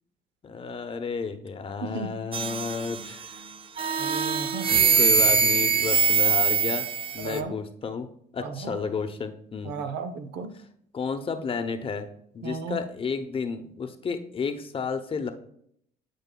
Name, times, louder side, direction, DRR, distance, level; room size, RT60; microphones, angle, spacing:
voice 1, 0.4-3.2 4.7-6.9 7.1-8.1 8.3-9.8 10.5-10.6 10.9-12.1 12.3-15.3, left 5 dB, 30° left, 7 dB, 0.8 m, -31 dB
voice 2, 1.8-2.1 4.0-4.7 7.2-7.5 8.4-8.8 9.6-10.5 12.4-12.8, right 4 dB, 90° right, 10 dB, 0.8 m, -34 dB
sound 1, 2.3-3.3 3.8-7.4, right 6 dB, 30° right, 0.5 m, -23 dB
14.0 x 4.7 x 2.3 m, 0.68 s
cardioid pair, 110°, 17 cm